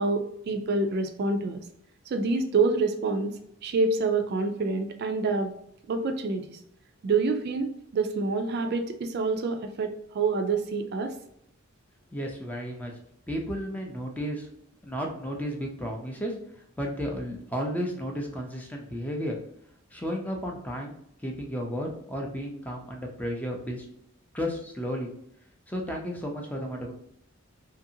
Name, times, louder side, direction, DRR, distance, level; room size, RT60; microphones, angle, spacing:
voice 1, 0.0-1.6 2.1-3.4 3.6-5.5 5.9-6.6 7.0-11.1, right 3 dB, 55° right, 6 dB, 0.3 m, -27 dB
voice 2, 12.1-12.9 13.3-14.5 14.8-16.3 16.8-19.4 19.9-20.9 21.2-23.9 24.3-25.1 25.7-26.9, equal, 10° left, 1 dB, 0.5 m, -33 dB
2.8 x 2.6 x 2.7 m, 0.73 s
head